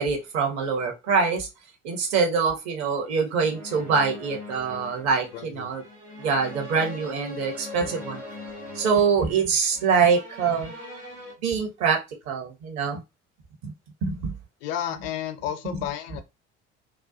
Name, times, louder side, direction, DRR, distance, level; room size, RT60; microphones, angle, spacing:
voice 1, 0.0-1.5 1.8-5.8 6.2-8.2 8.7-10.7 11.4-13.0 13.6-13.7 14.0-14.3 15.6-15.8, right 5 dB, 50° right, 0.8 m, -24 dB
sound 1, 3.4-11.3, left 1 dB, 90° right, 0.7 m, -41 dB
voice 2, 5.3-5.7 14.6-16.2, left 10 dB, 55° left, 0.5 m, -32 dB
2.3 x 2.1 x 2.5 m
figure-of-eight pair, 60°, 35 cm